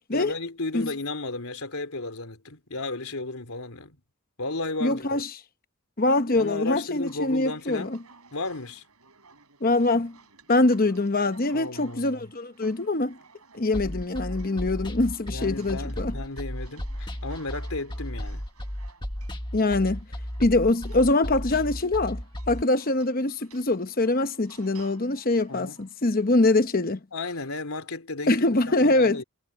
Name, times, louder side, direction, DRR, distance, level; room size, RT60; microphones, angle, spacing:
voice 1, 0.1-4.0 4.4-5.2 6.3-7.9 8.3-8.8 11.5-12.3 15.3-18.4 25.5-25.8 27.1-28.4 28.8-29.2, left 2 dB, 75° left, 3.4 m, -34 dB
voice 2, 4.8-5.3 6.0-8.0 9.6-10.2 10.5-13.2 13.5-16.1 19.5-20.0 20.4-22.2 22.5-27.0 28.3-29.2, left 2 dB, 40° left, 0.9 m, -23 dB
sound 1, 6.9-26.6, right 5 dB, 85° right, 7.6 m, -56 dB
sound 2, 13.7-22.6, equal, 20° left, 1.6 m, -34 dB
head